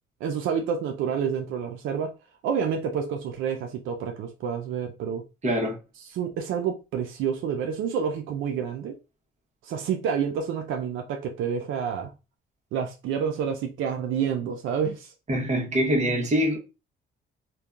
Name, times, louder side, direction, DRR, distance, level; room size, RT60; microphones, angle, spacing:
voice 1, 0.2-2.1 2.4-5.2 6.1-9.0 9.6-12.1 12.7-15.1, right 7 dB, 85° right, 0.4 m, -28 dB
voice 2, 5.4-5.8 15.3-16.6, equal, 35° right, 1.0 m, -24 dB
2.7 x 2.2 x 2.3 m
cardioid pair, 90°, 20 cm